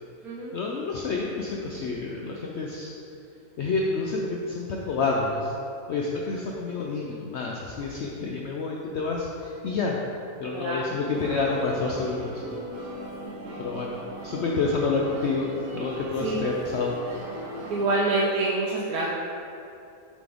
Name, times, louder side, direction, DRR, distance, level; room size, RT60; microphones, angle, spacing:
voice 1, 0.5-2.9 3.6-5.5 5.9-10.0 10.4-12.4 13.6-14.0 14.2-17.0, left 4 dB, 65° left, -2 dB, 0.7 m, -28 dB
voice 2, 10.5-11.0 13.4-13.6 16.2-16.3 17.7-19.1, right 2 dB, 80° right, -5 dB, 1.2 m, -26 dB
sound 1, 11.1-17.8, right 1 dB, 60° right, 1.3 m, -38 dB
7.4 x 4.2 x 3.4 m, 2.6 s
omnidirectional pair, 1.6 m